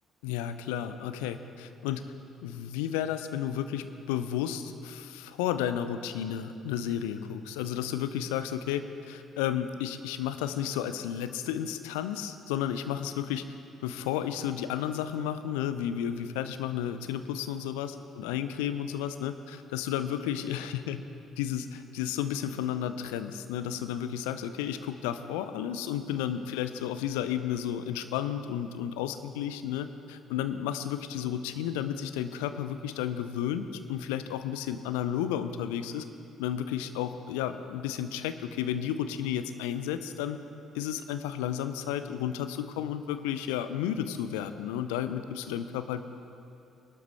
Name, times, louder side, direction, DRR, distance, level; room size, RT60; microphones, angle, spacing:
voice 1, 0.2-2.1 2.4-13.5 13.8-21.0 21.4-36.1 36.4-40.4 40.7-46.0, left 10 dB, 70° left, 10 dB, 0.6 m, -32 dB
20.0 x 12.5 x 3.1 m, 2.6 s
figure-of-eight pair, 45°, 0 cm